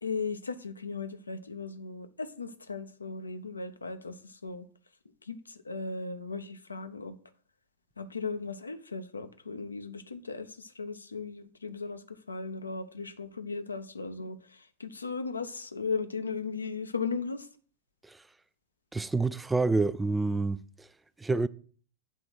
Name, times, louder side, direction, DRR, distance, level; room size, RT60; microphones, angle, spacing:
voice 1, 0.0-4.7 5.3-5.4 5.6-7.1 8.0-17.5, left 4 dB, 80° left, 0.7 m, -37 dB
voice 2, 18.9-20.9 21.2-21.5, right 3 dB, 10° right, 0.3 m, -28 dB
8.2 x 3.8 x 6.0 m
figure-of-eight pair, 90°, 0 cm